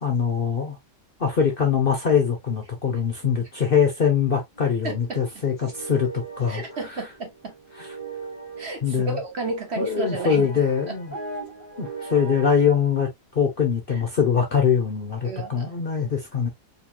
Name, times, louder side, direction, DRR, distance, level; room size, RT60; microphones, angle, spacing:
voice 1, 0.0-0.8 1.2-6.6 7.8-7.9 8.8-9.2 9.8-11.1 11.8-13.1 13.3-16.5, left 7 dB, 45° left, 0.8 m, -23 dB
sound 1, 4.5-12.5, right 3 dB, 10° right, 2.4 m, -39 dB
voice 2, 4.8-5.2 6.5-7.5 8.6-10.5 10.9-11.0 13.9-14.0 15.2-15.7, right 2 dB, 45° right, 1.2 m, -32 dB
4.5 x 3.2 x 2.2 m
omnidirectional pair, 1.7 m